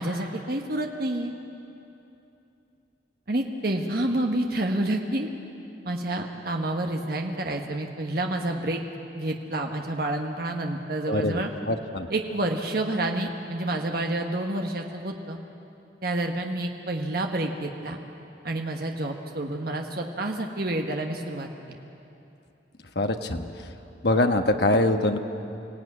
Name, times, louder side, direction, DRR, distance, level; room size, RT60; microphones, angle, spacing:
voice 1, 0.0-1.3 3.3-5.3 5.8-8.8 9.1-11.5 12.1-15.4 16.0-18.0 18.4-21.8, right 1 dB, 55° right, 2 dB, 1.4 m, -29 dB
voice 2, 11.1-12.1 22.9-23.4 24.0-25.2, left 2 dB, 60° left, 6 dB, 1.3 m, -23 dB
24.0 x 17.0 x 9.7 m, 2.8 s
head